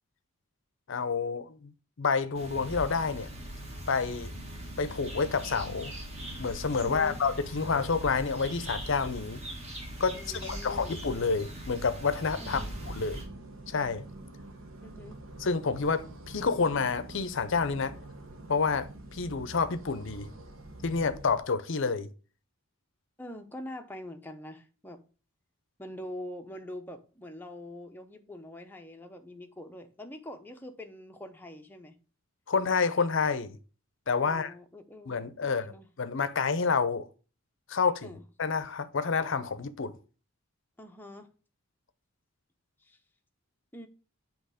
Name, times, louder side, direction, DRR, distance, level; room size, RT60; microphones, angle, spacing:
voice 1, 0.9-1.7 2.0-3.3 3.9-4.3 4.8-5.9 6.4-9.4 10.0-13.3 13.7-14.0 15.4-18.0 18.5-20.3 20.8-22.1 32.5-33.6 34.1-34.5 35.1-35.7 36.0-37.1 37.7-38.1 38.4-39.9, left 5 dB, 60° left, 0.6 m, -29 dB
sound 1, 2.3-13.2, right 1 dB, 30° right, 1.6 m, -40 dB
voice 2, 6.8-7.2 10.1-11.0 12.4-12.8 14.8-15.2 23.2-25.0 25.8-32.0 34.2-35.9 38.0-38.2 40.8-41.3 42.8-43.0 43.7-43.9, left 1 dB, 10° left, 0.6 m, -44 dB
sound 2, 12.4-21.4, right 2 dB, 65° right, 0.9 m, -46 dB
7.8 x 3.0 x 4.9 m
head